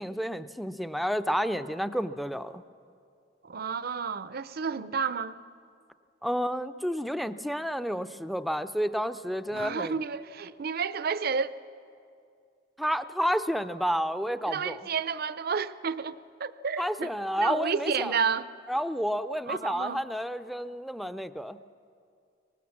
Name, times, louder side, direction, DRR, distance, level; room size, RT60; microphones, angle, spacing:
voice 1, 0.0-2.6 6.2-9.9 12.8-14.9 16.8-18.1 18.7-21.6, equal, ahead, 0.5 m, -30 dB
voice 2, 3.4-5.4 9.5-11.5 14.5-17.1 17.4-18.5 19.5-20.0, right 6 dB, 55° right, 0.6 m, -31 dB
23.5 x 19.0 x 7.3 m
head